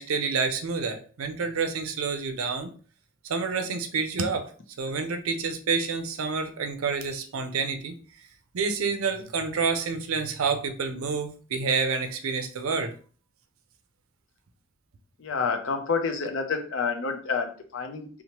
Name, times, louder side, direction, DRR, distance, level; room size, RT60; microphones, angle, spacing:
voice 1, 0.0-2.7 3.3-4.5 4.8-7.9 8.5-12.9, right 5 dB, 85° right, 7 dB, 0.5 m, -28 dB
voice 2, 15.2-18.1, left 5 dB, 65° left, 6 dB, 0.5 m, -28 dB
2.9 x 2.1 x 2.8 m, 0.41 s
head